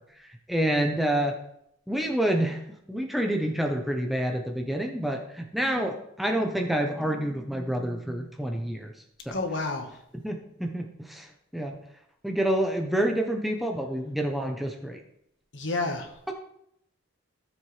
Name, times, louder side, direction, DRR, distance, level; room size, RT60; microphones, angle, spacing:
voice 1, 0.5-1.3 1.9-2.6 2.9-8.9 9.3-9.4 10.2-11.8 12.2-15.0 16.3-16.4, right 1 dB, ahead, 2 dB, 0.7 m, -28 dB
voice 2, 9.3-9.9 15.5-16.3, left 2 dB, 60° left, 4 dB, 1.3 m, -30 dB
13.5 x 7.4 x 3.2 m, 0.77 s
head